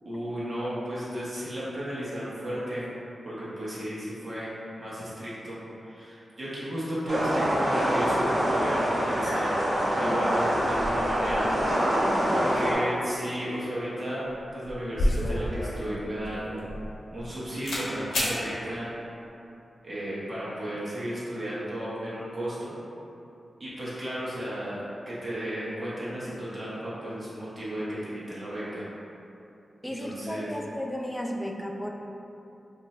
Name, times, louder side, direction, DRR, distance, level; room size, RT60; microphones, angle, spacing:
voice 1, 0.0-2.9 3.2-4.5 4.8-9.6 10.0-11.5 12.3-16.6 17.1-18.9 19.8-22.7 23.6-28.9 29.8-30.6, equal, 35° right, -9 dB, 1.1 m, -34 dB
sound 1, 7.1-12.7, equal, 60° right, 1.3 m, -25 dB
sound 2, 14.2-14.4 14.6-17.3 17.6-17.9 18.1-18.4, left 1 dB, 90° left, 0.7 m, -29 dB
voice 2, 29.8-31.9, equal, 5° left, 1 dB, 0.3 m, -34 dB
2.8 x 2.6 x 4.2 m, 2.8 s
wide cardioid pair, 95°, 0 cm